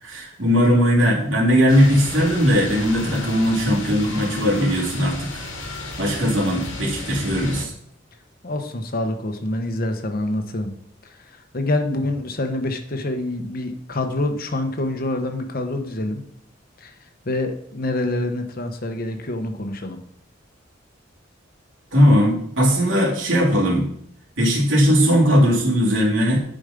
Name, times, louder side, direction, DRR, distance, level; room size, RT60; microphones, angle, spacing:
voice 1, 0.0-5.3 6.0-7.7 21.9-23.9 24.4-26.4, equal, 80° right, -4 dB, 3.1 m, -18 dB
sound 1, 1.7-7.6, left 2 dB, 85° left, 2.0 m, -33 dB
voice 2, 8.4-10.7 11.0-16.2 16.8-16.9 17.2-20.0, left 2 dB, 50° left, 6 dB, 1.0 m, -26 dB
10.0 x 5.3 x 5.2 m, 0.67 s
head